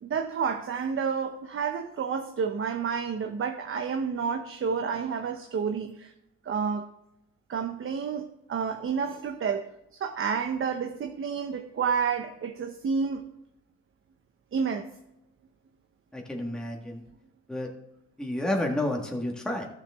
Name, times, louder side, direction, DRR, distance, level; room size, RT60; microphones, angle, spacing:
voice 1, 0.0-6.1 6.4-6.9 7.5-13.3 14.5-14.9, right 6 dB, 45° right, 0.8 m, -30 dB
voice 2, 16.1-17.0 17.5-17.7 18.2-19.7, left 1 dB, ahead, 1.6 m, -30 dB
13.5 x 6.9 x 3.5 m
cardioid pair, 90°, 30 cm